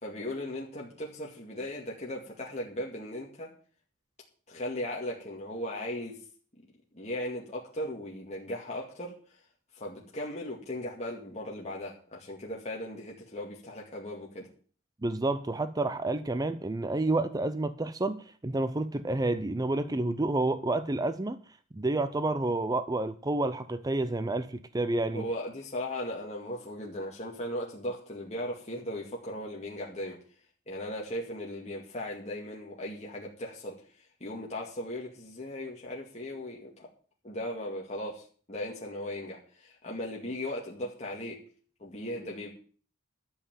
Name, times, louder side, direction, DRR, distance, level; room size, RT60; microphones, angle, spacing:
voice 1, 0.0-3.5 4.5-6.2 6.9-9.1 9.7-14.5 25.1-30.2 30.7-33.8 34.2-36.9 37.2-41.4 41.8-42.5, left 1 dB, 35° left, 2.2 m, -37 dB
voice 2, 15.0-21.4 21.7-25.3, right 2 dB, 20° right, 0.5 m, -29 dB
12.5 x 5.8 x 9.0 m
head